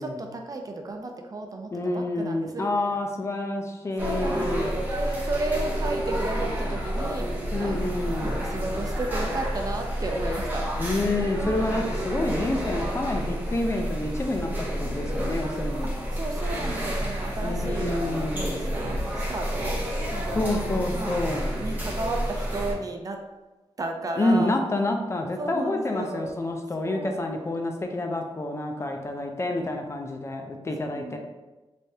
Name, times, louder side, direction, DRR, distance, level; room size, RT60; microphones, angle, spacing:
voice 1, 0.0-3.0 4.0-7.3 7.6-7.8 8.2-10.7 11.5-11.8 15.8-18.0 18.3-19.8 20.1-20.5 20.9-21.3 21.6-23.2 23.8-24.5 25.4-26.3 26.8-27.5 28.8-29.0 30.8-31.2, right 2 dB, 40° right, 3 dB, 0.4 m, -34 dB
voice 2, 1.7-4.7 7.5-8.4 10.8-16.0 17.4-18.7 20.3-21.6 24.2-31.2, left 2 dB, 30° left, 3 dB, 0.4 m, -28 dB
sound 1, 4.0-22.7, equal, 20° right, 0.9 m, -29 dB
3.3 x 3.3 x 2.7 m, 1.1 s
wide cardioid pair, 135°, 10 cm